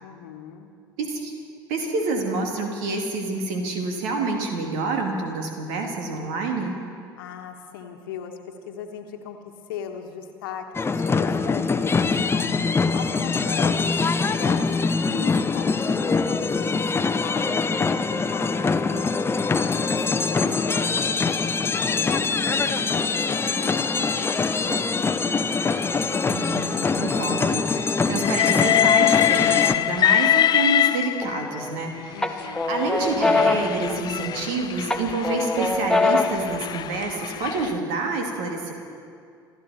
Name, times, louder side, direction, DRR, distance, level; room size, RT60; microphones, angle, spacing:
voice 1, 0.0-0.7 7.2-9.4 9.7-12.5 12.9-19.2 19.8-25.1 32.1-32.8, left 7 dB, 70° left, 5 dB, 1.3 m, -38 dB
voice 2, 1.0-1.3 1.7-6.7 26.3-32.2 32.7-38.7, right 3 dB, 65° right, 3 dB, 2.4 m, -28 dB
sound 1, 10.7-29.7, left 4 dB, 20° left, 0.8 m, -23 dB
Train, 28.2-31.6 32.4-37.7, left 11 dB, 35° left, 0.4 m, -23 dB
sound 2, 31.2-31.8 32.2-34.5 34.9-36.5, left 3 dB, 5° left, 1.2 m, -23 dB
27.0 x 12.5 x 4.2 m, 2.3 s
figure-of-eight pair, 60°, 12 cm